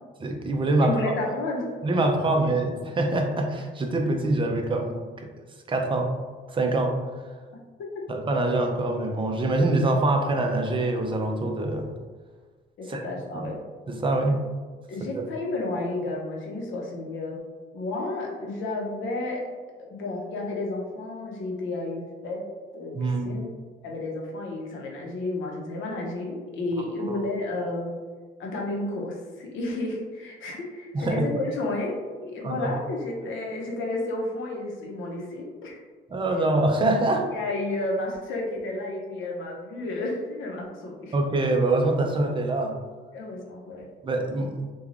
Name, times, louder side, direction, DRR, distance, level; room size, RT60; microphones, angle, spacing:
voice 1, 0.2-1.0 1.8-5.3 5.7-6.1 6.5-7.0 8.1-11.9 12.9-13.0 13.3-13.5 13.9-14.4 15.0-15.2 22.9-23.4 27.1-27.2 30.9-31.2 32.4-32.7 36.1-37.3 41.1-42.8 44.0-44.6, right 2 dB, 25° right, 3 dB, 0.4 m, -24 dB
voice 2, 0.8-1.7 2.2-2.5 7.9-8.0 12.8-13.6 14.9-17.4 17.7-19.4 19.8-22.4 22.7-23.5 23.8-27.9 28.4-35.8 37.3-41.1 43.1-43.9, left 2 dB, 75° left, -1 dB, 0.7 m, -31 dB
3.1 x 2.2 x 2.4 m, 1.4 s
cardioid pair, 90°, 20 cm